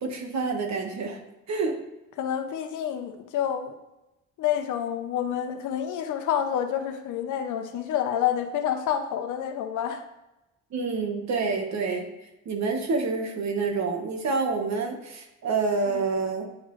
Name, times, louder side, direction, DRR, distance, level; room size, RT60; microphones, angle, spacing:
voice 1, 0.0-1.2 1.5-1.8 10.7-12.1 12.4-16.4, right 4 dB, 65° right, 4 dB, 1.4 m, -27 dB
voice 2, 2.2-3.7 4.4-10.0 15.9-16.0, left 9 dB, 80° left, 6 dB, 0.9 m, -28 dB
9.1 x 4.1 x 3.2 m, 0.97 s
cardioid pair, 90°, 30 cm